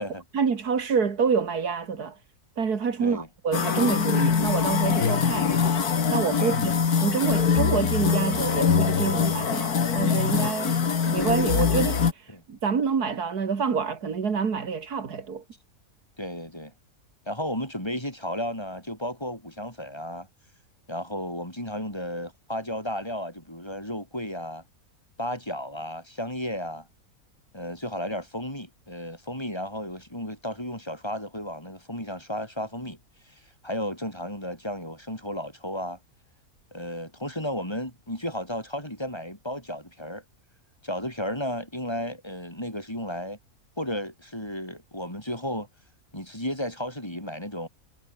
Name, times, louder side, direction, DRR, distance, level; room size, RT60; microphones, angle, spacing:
voice 1, 0.3-2.2 2.6-5.6 6.1-6.7 7.0-10.8 11.1-15.4, right 6 dB, 80° right, 2.5 m, -27 dB
sound 1, 3.5-12.1, left 6 dB, 75° left, 2.3 m, -23 dB
voice 2, 16.2-16.7 17.3-20.3 20.9-24.6 25.2-26.9 27.5-33.0 33.3-36.0 36.7-40.2 40.8-43.4 43.8-45.7 46.1-47.7, equal, 15° left, 5.8 m, -33 dB
omnidirectional pair, 1.6 m